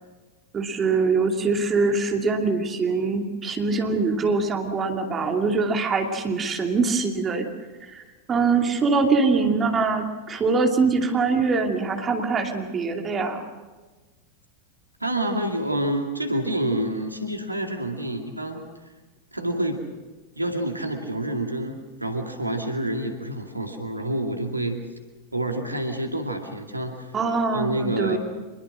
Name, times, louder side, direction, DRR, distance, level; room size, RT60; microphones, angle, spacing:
voice 1, 0.5-7.5 7.9-13.4 27.1-28.2, right 4 dB, 20° right, 3 dB, 2.7 m, -23 dB
voice 2, 15.0-18.6 19.3-19.8 20.4-24.8 25.3-27.1 27.5-28.2, right 1 dB, 85° right, 4 dB, 2.4 m, -28 dB
26.0 x 21.5 x 6.3 m, 1.3 s
figure-of-eight pair, 90°, 0 cm